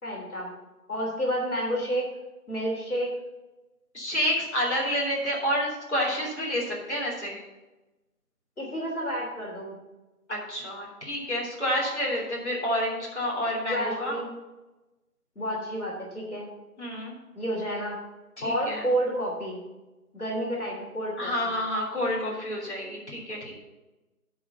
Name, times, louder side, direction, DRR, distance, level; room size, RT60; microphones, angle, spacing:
voice 1, 0.0-0.5 0.9-2.1 2.5-3.1 8.6-9.8 13.7-14.3 15.3-16.5 17.4-17.9 18.4-19.6 20.1-21.3, right 1 dB, 70° left, -2 dB, 3.2 m, -30 dB
voice 2, 3.9-7.4 10.3-14.2 16.8-17.2 18.4-18.9 21.2-23.5, equal, 45° left, -5 dB, 3.4 m, -29 dB
10.5 x 5.0 x 6.7 m, 1.1 s
figure-of-eight pair, 180°, 45 cm